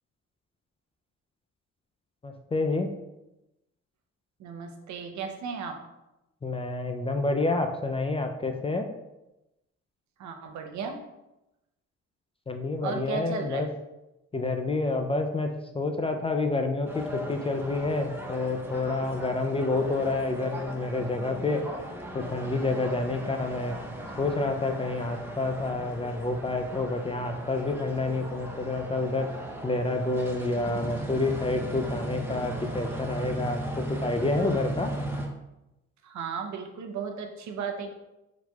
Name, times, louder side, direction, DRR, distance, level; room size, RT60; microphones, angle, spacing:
voice 1, 2.2-2.9 6.4-8.9 12.5-13.7 14.3-21.7 22.1-23.8 24.2-29.3 29.6-34.9, left 2 dB, 20° left, 5 dB, 0.4 m, -28 dB
voice 2, 4.4-5.8 10.2-11.0 12.8-13.7 36.0-37.9, right 5 dB, 70° right, 4 dB, 0.7 m, -35 dB
sound 1, 16.9-35.3, right 1 dB, 5° right, 0.7 m, -37 dB
4.4 x 4.0 x 2.3 m, 0.95 s
cardioid pair, 90°, 30 cm